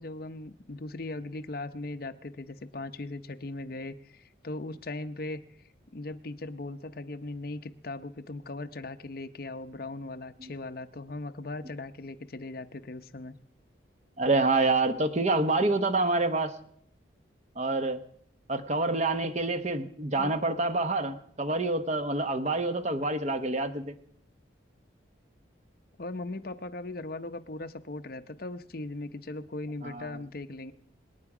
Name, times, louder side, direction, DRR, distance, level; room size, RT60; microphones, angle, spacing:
voice 1, 0.0-5.4 5.9-13.4 20.2-20.4 26.0-30.7, left 2 dB, 50° left, 8 dB, 0.8 m, -39 dB
voice 2, 14.2-16.6 17.6-18.0 18.5-23.9 29.8-30.1, right 2 dB, 35° right, 9 dB, 1.0 m, -27 dB
26.5 x 9.2 x 4.9 m, 0.67 s
head